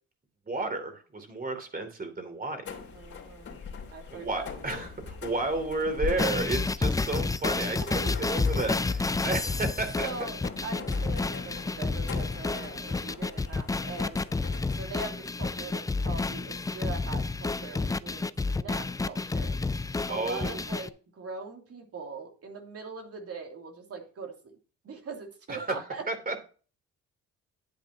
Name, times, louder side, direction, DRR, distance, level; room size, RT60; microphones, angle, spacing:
voice 1, 0.5-2.6 4.1-7.8 8.3-10.1 20.1-20.6 25.5-25.8 26.1-26.4, right 2 dB, 30° right, 7 dB, 2.9 m, -32 dB
sound 1, 2.6-14.8, left 6 dB, 45° left, 3.0 m, -42 dB
voice 2, 2.9-3.5 3.9-4.5 7.8-8.3 10.0-14.2 14.8-19.5 20.1-24.3 24.8-26.1, right 4 dB, 50° right, 2 dB, 2.9 m, -41 dB
sound 2, 6.2-20.9, left 3 dB, 10° left, 0.4 m, -30 dB
10.5 x 8.8 x 2.9 m, 0.38 s
cardioid pair, 90°, 30 cm